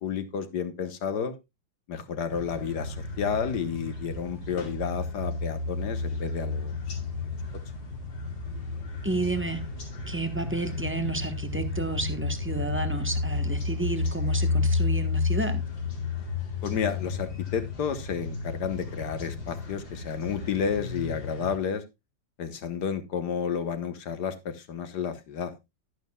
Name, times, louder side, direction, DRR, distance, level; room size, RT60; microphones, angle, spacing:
voice 1, 0.0-1.3 1.9-7.0 7.2-7.3 16.6-21.8 22.4-25.5, left 7 dB, 60° left, 1.8 m, -31 dB
sound 1, 2.3-21.6, left 3 dB, 85° left, 3.5 m, -32 dB
voice 2, 9.0-9.6 10.1-15.6, right 2 dB, 10° right, 0.9 m, -31 dB
11.5 x 11.0 x 2.3 m
omnidirectional pair, 2.0 m